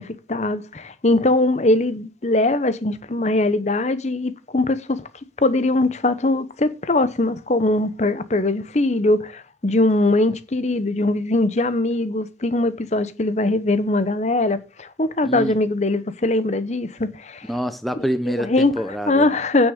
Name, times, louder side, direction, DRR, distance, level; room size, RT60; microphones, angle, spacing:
voice 1, 0.0-5.0 5.4-17.5 18.4-18.7 19.1-19.7, left 2 dB, 40° left, 0.8 m, -21 dB
voice 2, 15.2-15.5 17.5-19.3, equal, ahead, 0.7 m, -26 dB
9.6 x 6.4 x 6.4 m
head